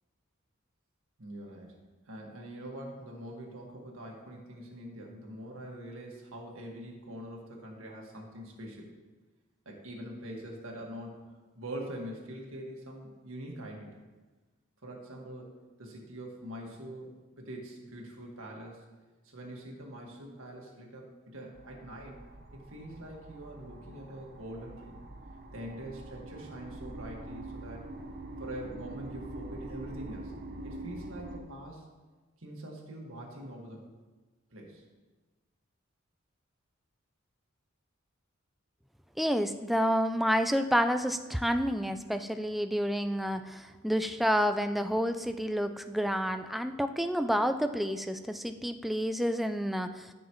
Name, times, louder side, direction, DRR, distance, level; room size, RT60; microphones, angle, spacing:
voice 1, 1.2-1.8 2.1-8.9 9.7-11.2 11.5-13.9 14.8-18.8 19.2-22.2 22.5-25.0 25.5-27.9 28.4-30.3 30.6-31.8 32.4-33.8 34.5-34.8, right 1 dB, 75° right, -1 dB, 1.8 m, -44 dB
sound 1, 21.5-31.4, right 2 dB, 50° right, 0.8 m, -44 dB
voice 2, 39.2-50.1, equal, ahead, 8 dB, 0.3 m, -29 dB
13.5 x 6.2 x 3.1 m, 1.3 s
head